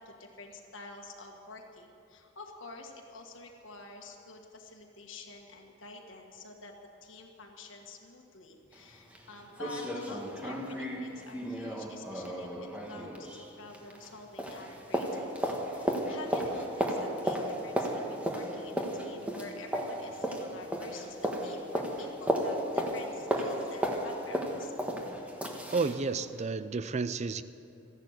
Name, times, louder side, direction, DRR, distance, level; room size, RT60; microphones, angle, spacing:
voice 1, 0.0-6.8 7.0-24.7, left 3 dB, 75° left, 1 dB, 1.5 m, -48 dB
sound 1, 8.7-8.8 9.1-9.2 9.6-14.1 14.4-26.0 26.4-26.5, equal, 5° right, 1.3 m, -34 dB
voice 2, 25.7-27.4, right 4 dB, 35° right, 14 dB, 0.4 m, -31 dB
14.5 x 11.0 x 8.0 m, 2.7 s
head